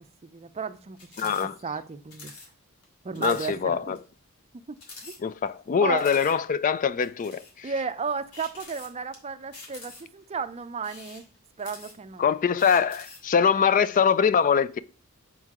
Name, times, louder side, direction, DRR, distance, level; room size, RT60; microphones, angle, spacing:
voice 1, 0.0-2.3 3.0-4.0 4.7-4.8 5.0-5.1 5.8-6.1 7.6-11.3 11.6-12.4, right 5 dB, 30° right, 0.5 m, -34 dB
sound 1, 1.0-1.5 1.7-1.8 2.1-2.5 2.8-2.9 3.1-3.5 4.0-4.1 4.8-5.6 6.0-6.3 7.0-7.6 8.3-9.2 9.5-10.2 10.7-12.2 12.6-13.3, left 3 dB, 80° left, 2.3 m, -46 dB
voice 2, 1.2-1.6 3.2-4.0 5.2-7.7 12.2-14.8, left 6 dB, 35° left, 0.3 m, -23 dB
6.4 x 4.5 x 3.6 m
head